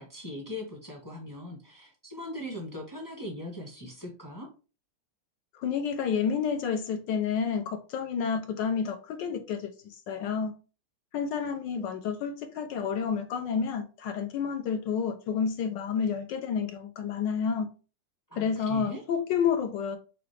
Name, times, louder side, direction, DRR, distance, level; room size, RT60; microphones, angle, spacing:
voice 1, 0.0-4.5 18.3-19.0, left 1 dB, 20° left, 0.5 m, -40 dB
voice 2, 5.5-10.5 11.1-17.7 18.4-20.0, left 6 dB, 75° left, 1.1 m, -30 dB
5.9 x 2.4 x 3.2 m
omnidirectional pair, 2.3 m